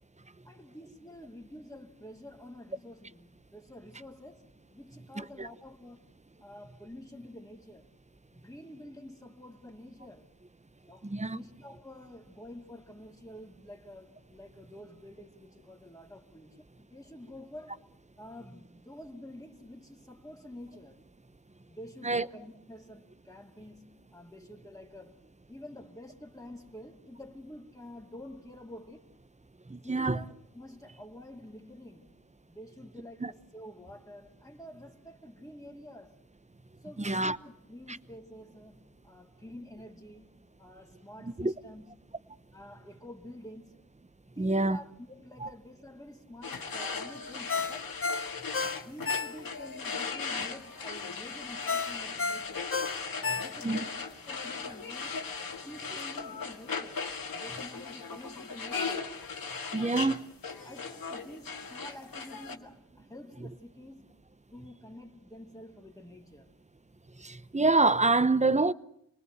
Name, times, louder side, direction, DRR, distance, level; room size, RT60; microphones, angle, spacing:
voice 1, 0.4-7.9 8.3-10.3 10.9-17.8 18.2-21.0 21.7-25.1 25.5-29.2 29.8-32.2 32.5-36.2 36.8-42.2 42.5-43.9 44.3-48.0 48.7-52.8 53.1-55.2 55.6-57.0 57.3-59.1 59.8-60.1 60.6-64.1 64.5-66.5, left 1 dB, 10° left, 2.6 m, -49 dB
voice 2, 5.2-5.5 11.0-11.4 22.0-22.3 29.7-30.2 33.2-33.3 37.0-37.4 37.9-38.0 41.2-41.5 44.4-44.8 45.4-45.5 53.6-53.8 59.7-60.2 67.2-68.7, right 3 dB, 20° right, 0.9 m, -26 dB
sound 1, 46.4-62.6, left 5 dB, 80° left, 1.9 m, -38 dB
Ringtone, 47.5-49.7 50.1-50.2 51.7-53.9 54.3-54.4, left 4 dB, 40° left, 1.0 m, -32 dB
27.5 x 20.0 x 8.1 m
cardioid pair, 50°, 34 cm